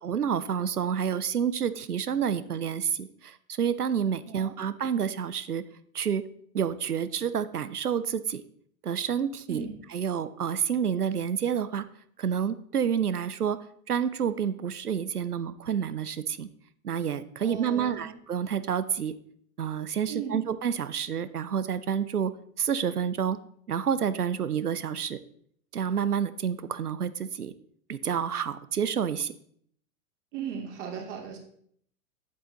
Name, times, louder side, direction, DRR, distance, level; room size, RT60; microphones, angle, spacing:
voice 1, 0.0-5.6 5.9-6.2 6.5-8.4 8.8-9.7 9.9-11.9 12.2-13.6 13.9-16.5 16.8-19.2 19.6-22.3 22.6-23.4 23.7-25.2 25.7-27.5 27.9-29.3, right 8 dB, 90° right, 14 dB, 0.7 m, -29 dB
voice 2, 17.4-18.1 20.1-20.4 30.3-31.4, right 7 dB, 50° right, 2 dB, 2.4 m, -37 dB
8.4 x 7.5 x 3.9 m, 0.65 s
figure-of-eight pair, 105°, 44 cm